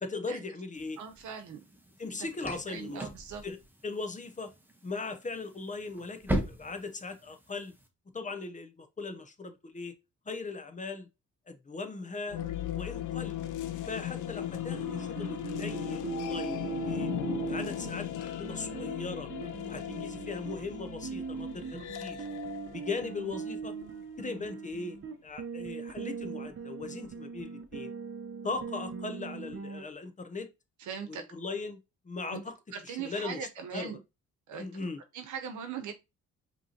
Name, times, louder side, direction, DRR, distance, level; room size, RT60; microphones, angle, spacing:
voice 1, 0.0-1.0 2.0-3.1 3.4-3.6 3.8-4.5 4.8-7.7 8.1-9.9 10.3-11.1 11.5-12.4 12.7-13.4 13.9-17.1 17.5-19.3 19.6-22.2 22.7-23.7 24.2-27.9 28.4-30.5 31.1-31.8 32.0-32.5 32.8-33.5 33.7-33.9 34.6-35.0, left 3 dB, 25° left, 0.8 m, -39 dB
sound 1, 0.7-7.9, right 1 dB, 5° right, 1.0 m, -40 dB
voice 2, 1.0-1.6 2.2-3.4 30.8-31.2 32.3-32.4 32.7-34.0 34.5-34.7 35.1-35.9, right 7 dB, 75° right, 1.0 m, -40 dB
sound 2, 12.3-24.1, left 11 dB, 80° left, 0.7 m, -38 dB
sound 3, 14.7-29.8, right 5 dB, 45° right, 0.9 m, -40 dB
5.3 x 3.1 x 2.8 m
cardioid pair, 90°, 30 cm